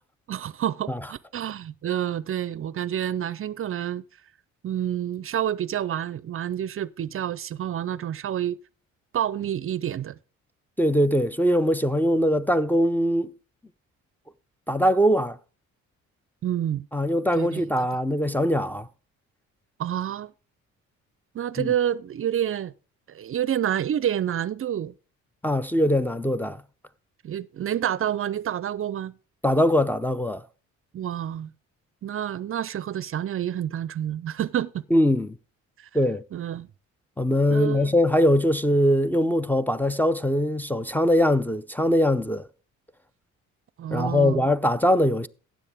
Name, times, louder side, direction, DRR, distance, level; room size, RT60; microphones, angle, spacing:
voice 1, 0.3-4.0 4.6-8.6 9.1-10.2 16.4-16.9 17.4-17.9 19.8-20.3 21.3-22.7 23.1-24.9 27.2-29.1 30.9-31.5 32.0-34.7 35.8-35.9 36.3-36.7 37.5-37.9 43.8-44.4, right 10 dB, 45° right, 0.5 m, -28 dB
voice 2, 10.8-13.3 14.7-15.4 16.9-18.9 21.6-21.7 25.4-26.6 29.4-30.4 34.9-35.4 35.9-36.2 37.2-42.4 43.9-45.3, equal, 5° left, 0.5 m, -22 dB
15.5 x 7.2 x 3.5 m
cardioid pair, 90°, 30 cm